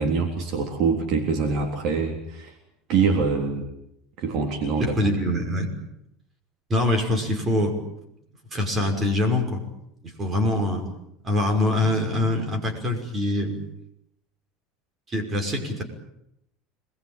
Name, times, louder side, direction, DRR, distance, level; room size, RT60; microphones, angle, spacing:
voice 1, 0.0-2.5 2.9-3.7 4.2-5.0, right 5 dB, 50° right, 3 dB, 3.6 m, -24 dB
voice 2, 4.8-5.8 6.7-7.8 8.5-9.6 10.0-10.9 11.2-13.6 15.1-15.8, left 1 dB, 20° right, 3 dB, 5.9 m, -24 dB
26.5 x 21.5 x 9.1 m, 0.81 s
cardioid pair, 155°, 0 cm